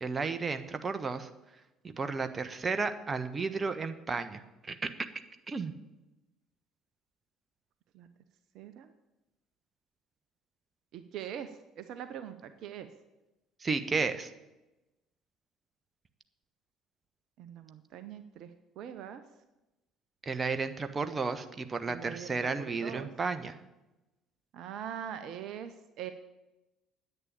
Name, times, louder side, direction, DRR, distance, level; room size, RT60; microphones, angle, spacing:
voice 1, 0.0-1.3 1.8-4.8 5.5-5.7 13.6-14.3 20.2-23.5, right 4 dB, 30° right, 10 dB, 1.2 m, -33 dB
voice 2, 8.5-8.9 10.9-12.9 17.4-19.2 21.8-23.1 24.5-26.1, right 9 dB, 60° right, 10 dB, 0.8 m, -42 dB
10.0 x 8.8 x 8.6 m, 1.0 s
hypercardioid pair, 55°, 0 cm